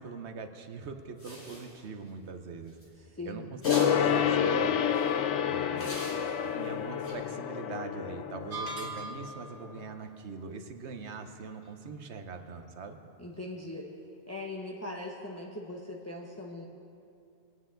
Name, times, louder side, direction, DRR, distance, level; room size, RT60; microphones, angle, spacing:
voice 1, 0.0-2.7 3.2-4.8 5.4-6.0 6.4-13.0, right 4 dB, 70° right, 7 dB, 1.1 m, -42 dB
sound 1, 1.2-2.1 2.7-2.9 3.6-4.2 4.9-5.1 5.8-6.7 7.0-7.1, equal, 60° left, 3.9 m, -41 dB
voice 2, 3.1-3.5 13.2-13.9 14.3-16.6, left 2 dB, 15° left, -2 dB, 0.8 m, -40 dB
Gong, 3.6-9.5 9.8-9.9, left 8 dB, 80° left, 0.9 m, -29 dB
sound 2, 8.5-9.5, right 2 dB, 45° right, 1.7 m, -38 dB
22.0 x 9.4 x 3.8 m, 2.6 s
omnidirectional pair, 1.2 m